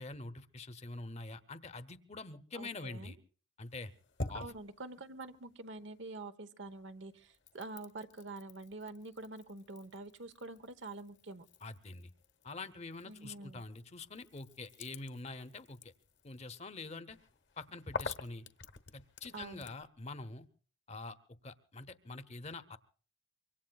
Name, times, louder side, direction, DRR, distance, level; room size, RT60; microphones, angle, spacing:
voice 1, 0.0-3.2 3.6-3.9 4.3-4.5 11.6-12.1 12.4-15.9 16.2-17.2 17.6-18.5 18.9-20.5 20.9-21.2 21.4-22.8, left 3 dB, 35° left, 12 dB, 0.8 m, -45 dB
voice 2, 2.5-3.1 4.3-11.5 13.0-13.6 19.3-19.6, right 2 dB, 65° right, 12 dB, 1.0 m, -46 dB
sound 1, 3.6-6.3 6.6-19.9, left 3 dB, 65° left, 1.1 m, -49 dB
25.5 x 24.0 x 2.3 m, 0.43 s
head